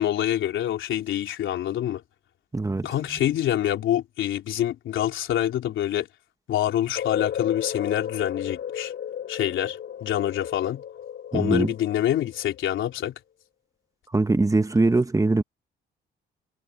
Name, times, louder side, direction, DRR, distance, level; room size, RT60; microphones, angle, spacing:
voice 1, 0.0-2.0 2.8-6.1 6.5-8.9 9.3-10.8 11.3-13.1, left 11 dB, 80° left, 3.7 m, -26 dB
voice 2, 2.5-2.9 11.3-11.7 14.1-15.4, right 3 dB, 15° right, 1.4 m, -22 dB
sound 1, 6.9-12.8, left 9 dB, 60° left, 5.5 m, -33 dB
cardioid pair, 90°, 20 cm